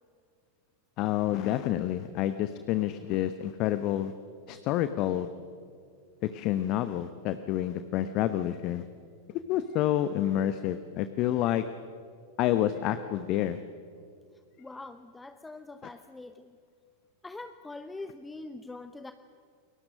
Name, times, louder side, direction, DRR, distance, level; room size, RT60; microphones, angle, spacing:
voice 1, 1.0-4.1 4.5-5.3 6.2-8.8 9.5-11.6 12.4-13.6, left 12 dB, 40° left, 11 dB, 1.0 m, -28 dB
voice 2, 14.6-16.6 17.2-19.1, left 2 dB, 10° left, 10 dB, 0.8 m, -43 dB
29.0 x 22.5 x 6.6 m, 2.2 s
figure-of-eight pair, 90°, 0 cm